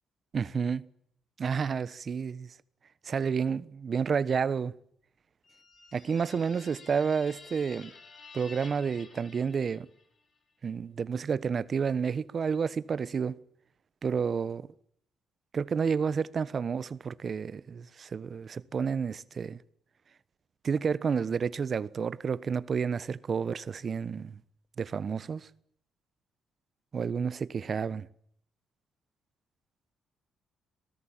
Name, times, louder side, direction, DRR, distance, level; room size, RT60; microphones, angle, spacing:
voice 1, 0.3-0.8 1.4-2.5 3.1-4.7 5.9-7.9 8.3-9.9 10.6-13.4 14.0-14.7 15.5-19.6 20.6-24.4 24.8-25.5 26.9-28.1, right 6 dB, 45° right, 1.2 m, -30 dB
sound 1, 5.4-10.2, left 4 dB, 45° left, 5.2 m, -51 dB
26.5 x 19.0 x 9.0 m
cardioid pair, 90°, 0 cm